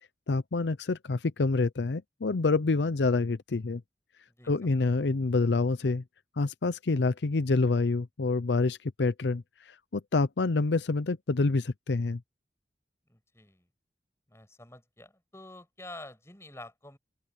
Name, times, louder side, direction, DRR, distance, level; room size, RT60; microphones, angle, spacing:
voice 1, 0.3-3.8 4.4-6.0 6.4-12.2, left 3 dB, 85° left, 0.6 m, -27 dB
voice 2, 4.4-4.9 13.1-13.7 14.3-17.0, left 2 dB, 15° left, 6.2 m, -48 dB
open air
head